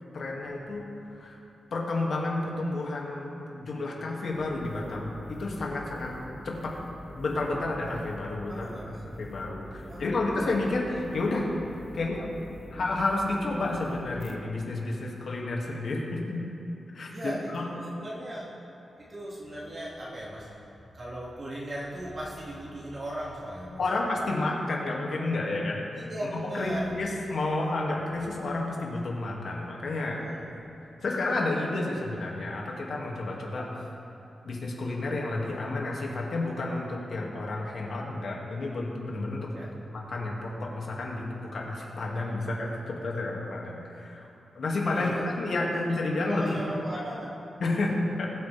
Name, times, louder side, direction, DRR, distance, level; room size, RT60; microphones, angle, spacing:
voice 1, 0.1-0.9 1.1-1.4 1.7-6.1 6.4-6.7 7.2-8.7 9.1-11.5 11.9-12.3 12.7-16.4 16.9-17.1 17.5-17.6 23.8-25.8 26.4-30.2 31.0-33.7 34.5-44.3 44.5-46.5 47.6-48.3, left 2 dB, 65° left, -2 dB, 2.2 m, -31 dB
sound 1, 4.3-14.4, equal, ahead, 0.8 m, -46 dB
voice 2, 8.5-9.0 9.8-10.1 17.1-18.5 19.0-20.5 20.9-23.8 25.9-26.9 30.2-30.6 39.5-39.7 44.9-45.4 46.3-47.3, right 1 dB, 40° right, -7 dB, 2.3 m, -37 dB
21.5 x 9.0 x 3.4 m, 3.0 s
wide cardioid pair, 125°, 0 cm